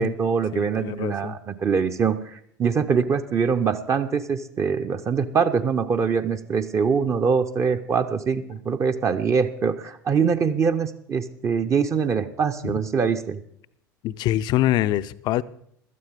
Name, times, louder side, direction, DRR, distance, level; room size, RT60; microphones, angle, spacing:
voice 1, 0.0-13.4, right 6 dB, 30° right, 7 dB, 0.7 m, -23 dB
voice 2, 0.5-1.4 12.6-12.8 14.0-15.4, left 14 dB, 40° left, 16 dB, 0.5 m, -24 dB
16.0 x 12.5 x 3.7 m, 0.68 s
figure-of-eight pair, 70°, 11 cm